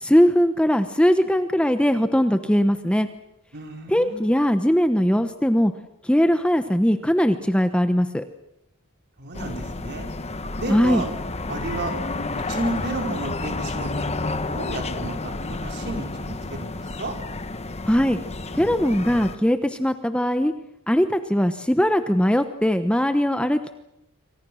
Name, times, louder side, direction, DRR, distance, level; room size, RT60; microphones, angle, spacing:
voice 1, 0.0-3.1 3.9-5.7 6.1-8.2 10.7-11.0 17.9-18.2 18.5-20.5 20.9-23.7, equal, 5° left, 9 dB, 0.9 m, -20 dB
voice 2, 3.5-4.3 9.2-10.1 10.6-11.1 11.5-11.9 12.3-13.9 14.4-17.1, right 2 dB, 50° right, 3 dB, 4.9 m, -32 dB
sound 1, 9.3-19.4, left 2 dB, 30° left, 1.1 m, -30 dB
27.5 x 25.0 x 6.4 m, 0.89 s
head